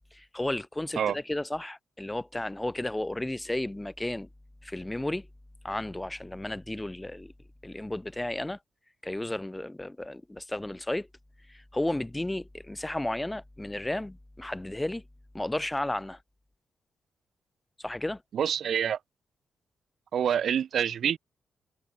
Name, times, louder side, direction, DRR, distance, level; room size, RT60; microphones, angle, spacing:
voice 1, 0.1-4.3 4.6-5.3 5.6-7.3 7.6-8.6 9.0-11.1 11.5-15.0 15.3-16.2 17.8-18.2, left 1 dB, 10° left, 6.7 m, -33 dB
voice 2, 18.3-19.0 20.1-21.2, right 8 dB, 60° right, 6.4 m, -26 dB
cardioid pair, 125°, 0 cm